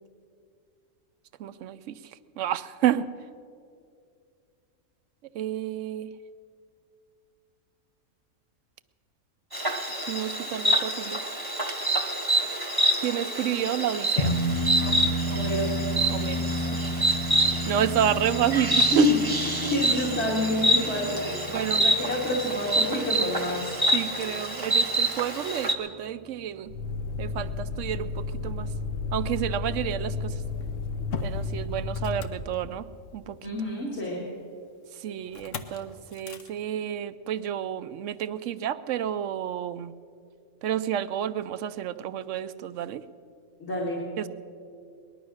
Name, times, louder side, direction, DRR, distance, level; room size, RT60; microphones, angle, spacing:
voice 1, 1.4-2.0 2.4-3.1 5.3-6.1 9.9-11.2 13.0-14.3 16.1-16.4 16.7-16.8 17.4-19.1 21.5-21.8 22.3-22.4 23.9-26.7 27.2-28.7 29.1-30.4 31.2-32.9 33.1-33.5 34.9-39.9 40.6-43.0 44.2-44.3, right 10 dB, 70° right, 14 dB, 0.9 m, -30 dB
Insect, 9.5-25.7, right 1 dB, 20° right, 1.0 m, -27 dB
sound 1, 14.2-24.9, equal, 30° left, 0.9 m, -32 dB
voice 2, 15.3-15.7 18.9-21.3 21.7-23.7 33.4-34.2 43.6-44.0, left 2 dB, 50° left, -4 dB, 2.7 m, -28 dB
Motor vehicle (road), 26.7-33.1 35.3-35.8 36.1-36.5, left 4 dB, 65° left, 1.2 m, -32 dB
19.5 x 11.5 x 6.3 m, 2.3 s
omnidirectional pair, 1.4 m